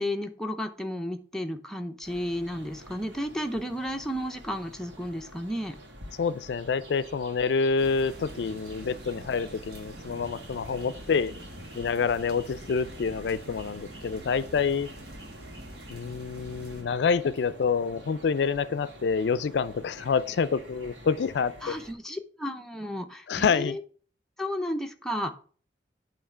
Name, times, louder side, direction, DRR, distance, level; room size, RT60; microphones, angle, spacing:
voice 1, 0.0-5.8 21.6-23.8 24.4-25.3, equal, 5° left, 0.6 m, -33 dB
sound 1, 2.0-21.9, equal, 90° right, 1.8 m, -48 dB
voice 2, 6.2-11.3 11.7-14.9 15.9-21.5 23.3-23.8, left 5 dB, 70° left, 0.4 m, -27 dB
sound 2, 7.8-16.8, right 1 dB, 60° right, 1.4 m, -45 dB
8.7 x 3.2 x 5.5 m
head